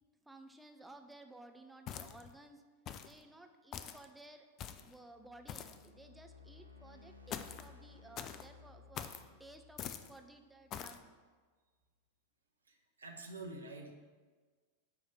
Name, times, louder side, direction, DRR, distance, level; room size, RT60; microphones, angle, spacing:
voice 1, 0.2-2.6 3.0-4.5 4.8-9.1 9.4-11.1, right 2 dB, 5° right, 5 dB, 0.6 m, -56 dB
sound 1, 1.9-2.3 2.9-3.2 3.7-4.1 4.6-4.9 5.5-5.9 7.3-7.7 8.2-8.5 9.0-9.3 9.8-10.1 10.7-11.0, left 9 dB, 35° left, 0.4 m, -44 dB
sound 2, 5.1-11.3, left 5 dB, 90° left, 0.6 m, -59 dB
voice 2, 12.7-13.9, right 2 dB, 75° right, 4 dB, 0.9 m, -47 dB
9.5 x 3.2 x 5.6 m, 1.5 s
figure-of-eight pair, 90°, 0 cm